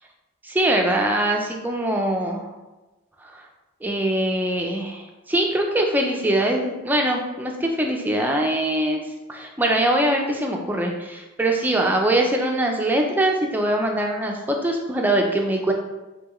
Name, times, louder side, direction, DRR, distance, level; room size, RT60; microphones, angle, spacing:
voice 1, 0.4-2.5 3.2-3.3 3.8-9.0 9.3-15.7, right 1 dB, 10° right, 1 dB, 0.4 m, -22 dB
6.1 x 2.8 x 3.0 m, 1.1 s
head